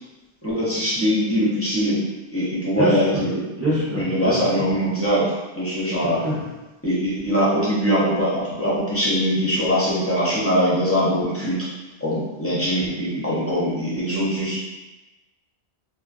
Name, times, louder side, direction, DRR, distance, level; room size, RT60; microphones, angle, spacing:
voice 1, 0.4-2.0 2.3-3.5 4.0-6.2 6.8-11.6 12.0-14.6, equal, 20° left, -8 dB, 0.4 m, -22 dB
voice 2, 3.6-4.4 6.0-6.4, right 1 dB, 15° right, -8 dB, 0.6 m, -24 dB
2.4 x 2.2 x 2.4 m, 1.1 s
omnidirectional pair, 1.1 m